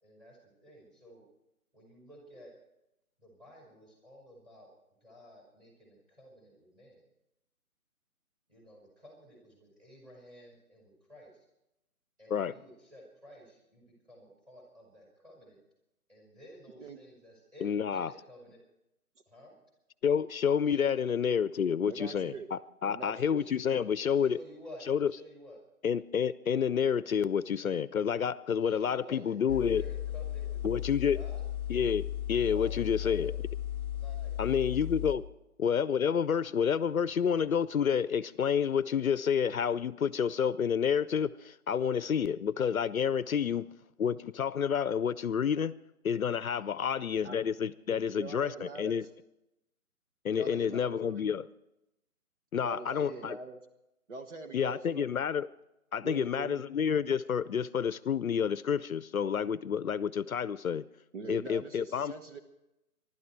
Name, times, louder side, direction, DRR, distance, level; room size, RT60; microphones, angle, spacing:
voice 1, 0.0-1.2 1.7-2.5 3.2-4.7 5.0-7.0 8.5-11.3 12.2-15.6 16.1-18.6 19.3-19.5 20.8-20.9 23.4-23.7 24.1-25.6 28.7-30.6 30.9-31.4 32.3-33.4 33.9-34.5 35.0-35.1 46.4-46.7 52.9-53.2, equal, 10° right, -2 dB, 5.2 m, -53 dB
voice 2, 17.6-18.1 20.0-24.4 24.9-25.1 25.8-29.8 30.6-31.2 31.7-33.3 34.4-35.2 35.6-43.7 44.0-45.8 46.0-49.0 50.2-51.4 52.5-53.4 54.5-55.5 55.9-60.8 61.3-62.1, left 7 dB, 65° left, 17 dB, 0.7 m, -29 dB
voice 3, 21.9-22.5 22.9-23.5 47.2-47.4 47.9-49.0 50.3-51.3 52.6-53.6 54.1-55.1 56.0-56.6 61.1-62.4, right 4 dB, 50° right, 5 dB, 1.6 m, -43 dB
sound 1, 29.5-35.2, left 11 dB, 5° left, 0.6 m, -35 dB
25.0 x 12.0 x 4.6 m, 0.89 s
figure-of-eight pair, 155°, 44 cm